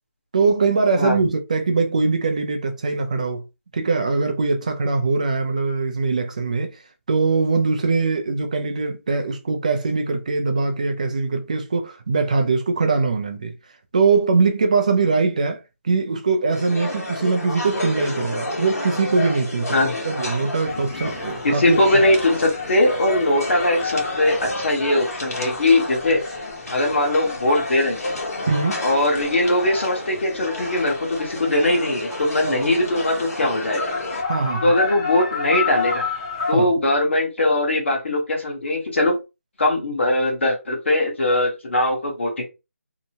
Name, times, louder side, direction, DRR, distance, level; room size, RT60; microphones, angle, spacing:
voice 1, 0.3-3.4 3.7-6.8 7.1-13.5 13.9-21.8 28.5-28.8 32.4-32.5 34.3-34.7 36.5-36.7, right 4 dB, 30° right, 0.4 m, -22 dB
sound 1, 16.5-34.2, left 1 dB, 85° left, 1.1 m, -31 dB
sound 2, 20.7-36.5, left 4 dB, 20° left, 0.5 m, -32 dB
voice 2, 21.4-26.2 26.7-28.0 28.8-33.9 34.6-36.0 36.5-39.2 39.6-42.4, left 1 dB, 50° left, 1.1 m, -20 dB
2.8 x 2.1 x 2.8 m
figure-of-eight pair, 170°, 8 cm